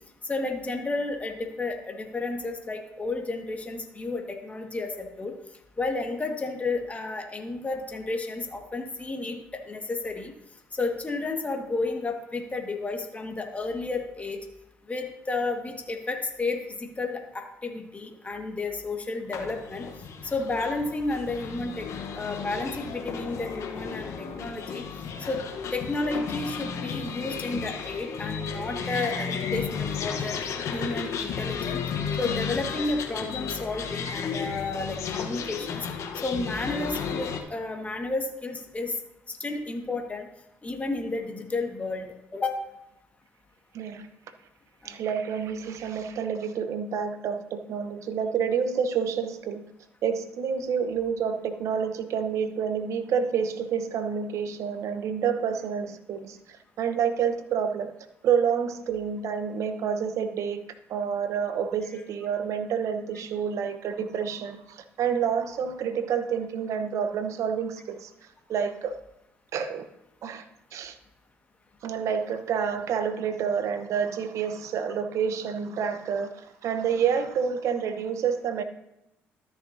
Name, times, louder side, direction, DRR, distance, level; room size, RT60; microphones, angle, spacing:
voice 1, 0.3-5.3 5.8-9.4 9.7-10.3 10.7-14.4 14.9-19.9 20.2-21.8 22.1-24.8 25.3-25.4 25.7-30.3 30.7-31.8 32.2-35.9 36.2-38.9 39.3-40.3 40.6-42.6, left 3 dB, 25° left, 3 dB, 1.6 m, -32 dB
sound 1, 19.3-37.4, left 6 dB, 65° left, 1.0 m, -33 dB
voice 2, 43.7-44.1 44.8-49.6 50.0-57.9 58.2-68.1 68.5-69.0 69.5-69.8 70.2-71.0 71.8-78.6, right 7 dB, 65° right, 9 dB, 0.9 m, -28 dB
13.0 x 6.5 x 2.7 m, 0.88 s
hypercardioid pair, 60°, 6 cm